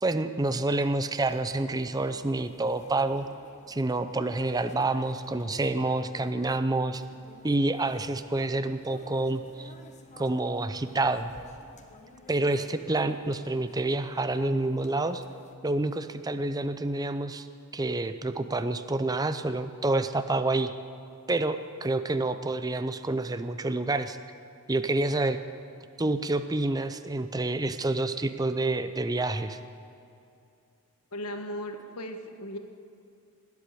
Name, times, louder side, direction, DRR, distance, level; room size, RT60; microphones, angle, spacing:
voice 1, 0.0-3.3 3.7-7.0 7.4-9.7 10.2-11.3 12.3-15.2 15.6-17.5 17.7-20.7 21.3-24.2 24.7-25.4 26.0-29.6, right 2 dB, 15° right, 10 dB, 0.5 m, -28 dB
sound 1, 1.1-15.6, left 2 dB, 30° left, 1.1 m, -52 dB
voice 2, 31.1-32.6, equal, 85° left, 6 dB, 1.5 m, -37 dB
19.5 x 8.4 x 8.4 m, 2.5 s
head